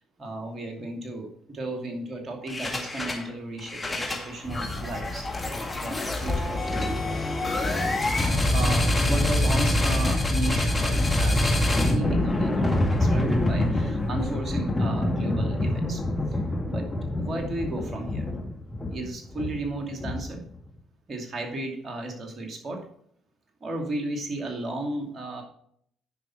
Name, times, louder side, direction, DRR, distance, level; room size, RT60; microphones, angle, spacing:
voice 1, 0.2-5.3 5.7-7.2 8.0-16.0 16.3-16.9 17.2-18.3 18.9-20.4 21.1-22.8 23.6-25.4, right 2 dB, 45° right, 3 dB, 2.5 m, -34 dB
sound 1, 2.5-3.3 3.6-20.5, left 1 dB, 25° left, 2.0 m, -25 dB
10.0 x 5.9 x 4.4 m, 0.66 s
hypercardioid pair, 50°, 0 cm